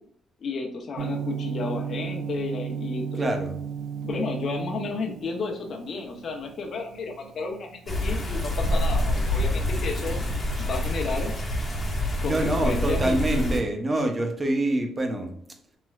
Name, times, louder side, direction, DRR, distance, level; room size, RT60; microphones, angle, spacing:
voice 1, 0.4-3.3 4.0-10.2 10.7-11.3 12.2-12.3 12.6-13.6, left 3 dB, 55° left, 2 dB, 0.5 m, -32 dB
Gong, 1.0-9.0, right 7 dB, 85° right, 0.3 m, -35 dB
voice 2, 3.1-3.5 12.3-15.3, right 1 dB, 30° right, 4 dB, 0.6 m, -26 dB
sound 1, 7.9-13.6, left 1 dB, 25° left, 0.8 m, -26 dB
3.1 x 2.9 x 2.3 m, 0.63 s
cardioid pair, 90°, 0 cm